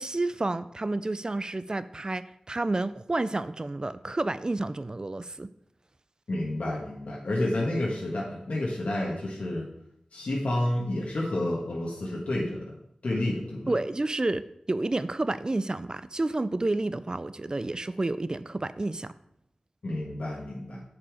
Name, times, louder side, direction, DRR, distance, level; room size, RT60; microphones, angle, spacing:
voice 1, 0.0-5.5 13.7-19.1, right 2 dB, 35° right, 14 dB, 0.4 m, -30 dB
voice 2, 6.3-9.7 10.1-12.6 13.0-13.7 19.8-20.8, left 1 dB, 80° left, -4 dB, 1.5 m, -30 dB
6.9 x 6.9 x 4.9 m, 0.76 s
wide cardioid pair, 55°, 2 cm